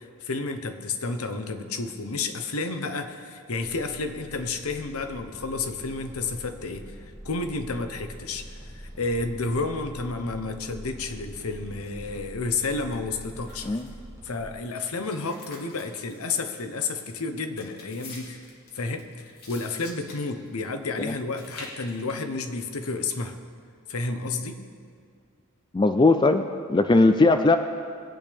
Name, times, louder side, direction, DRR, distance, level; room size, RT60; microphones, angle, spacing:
voice 1, 0.0-13.8 14.2-18.4 18.7-19.1 19.5-23.4 23.9-24.6, left 3 dB, 75° left, 7 dB, 0.9 m, -31 dB
sound 1, 3.5-14.5, equal, 15° right, 1.7 m, -44 dB
sound 2, 13.5-14.0 14.7-16.5 16.8-17.1 17.6-20.8 21.1-22.1 22.7-23.1, left 3 dB, 45° left, 2.2 m, -46 dB
voice 2, 25.7-26.4 26.7-27.6, left 2 dB, 20° left, 7 dB, 0.3 m, -19 dB
21.0 x 8.4 x 3.5 m, 2.2 s
head